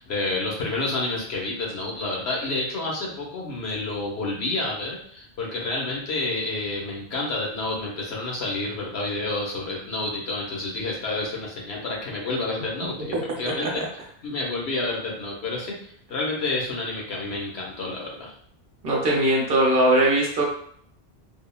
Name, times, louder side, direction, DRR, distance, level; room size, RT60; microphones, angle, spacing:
voice 1, 0.0-13.8 14.2-18.3, left 2 dB, 90° left, -2 dB, 1.2 m, -29 dB
voice 2, 13.1-13.9 18.8-20.4, right 1 dB, 65° right, -2 dB, 1.0 m, -21 dB
3.4 x 2.1 x 2.3 m, 0.63 s
omnidirectional pair, 1.0 m